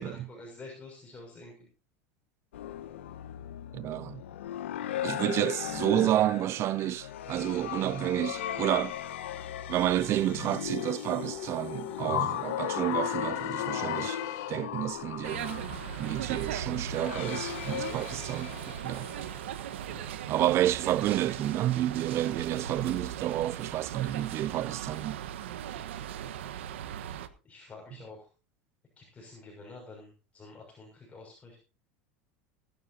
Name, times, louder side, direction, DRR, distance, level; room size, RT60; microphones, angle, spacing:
voice 1, 0.0-1.7 17.7-18.3 19.8-20.0 27.4-28.3 29.0-31.6, left 2 dB, 20° left, 6.4 m, -48 dB
sound 1, 2.5-19.8, left 11 dB, 85° left, 1.5 m, -37 dB
voice 2, 3.7-4.2 5.0-9.0 9.7-14.2 14.5-15.6 16.0-19.1 20.3-25.2, right 13 dB, 45° right, 0.6 m, -30 dB
sound 2, 8.9-14.8, left 14 dB, 55° left, 1.0 m, -41 dB
sound 3, 15.2-27.3, right 10 dB, 80° right, 1.3 m, -38 dB
23.5 x 11.5 x 2.8 m
hypercardioid pair, 95°, 6 cm